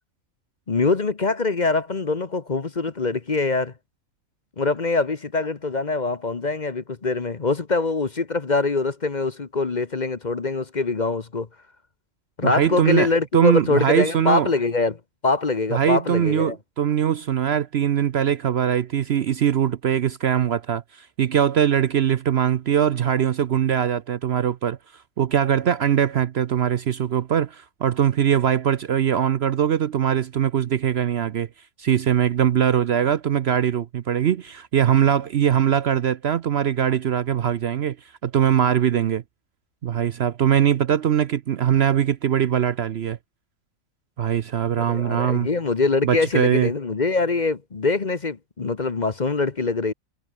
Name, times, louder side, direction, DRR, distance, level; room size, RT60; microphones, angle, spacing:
voice 1, 0.7-3.7 4.6-11.5 12.4-15.0 15.2-16.6 44.8-49.9, left 3 dB, 35° left, 1.1 m, -23 dB
voice 2, 12.4-14.5 15.7-31.5 31.8-38.0 38.2-39.2 39.8-43.2 44.2-45.5 46.0-46.7, right 9 dB, 60° right, 0.8 m, -21 dB
omnidirectional pair, 1.4 m